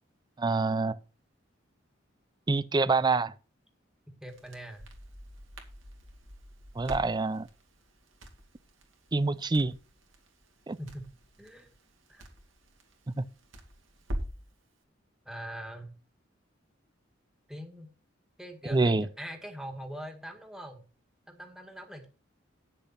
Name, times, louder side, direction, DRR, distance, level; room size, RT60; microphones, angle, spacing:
voice 1, 0.4-1.0 2.5-3.3 6.8-7.5 9.1-9.8 10.7-10.8 13.1-13.2 18.7-19.1, right 3 dB, 20° right, 0.5 m, -26 dB
voice 2, 4.2-4.8 10.8-11.1 11.4-11.7 12.1-12.3 15.3-15.9 17.5-17.9 18.4-20.8 21.3-22.1, equal, 5° right, 1.8 m, -42 dB
Crackle, 4.3-14.5, equal, 85° right, 2.4 m, -44 dB
9.9 x 6.8 x 5.6 m
head